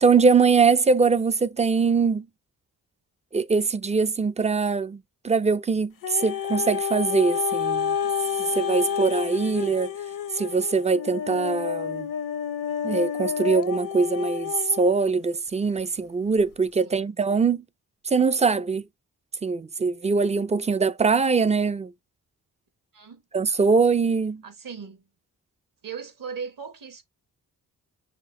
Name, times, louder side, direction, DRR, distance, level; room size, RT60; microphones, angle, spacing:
voice 1, 0.0-2.3 3.3-5.0 5.2-8.0 8.5-9.9 10.4-12.1 12.8-17.6 18.1-18.8 19.4-21.9 23.3-24.4, right 4 dB, 20° right, 0.4 m, -22 dB
sound 1, 6.0-15.1 15.8-15.9, left 8 dB, 60° left, 0.7 m, -29 dB
voice 2, 24.4-25.1 25.8-27.0, right 6 dB, 60° right, 1.1 m, -38 dB
5.8 x 2.4 x 3.6 m
cardioid pair, 65°, 38 cm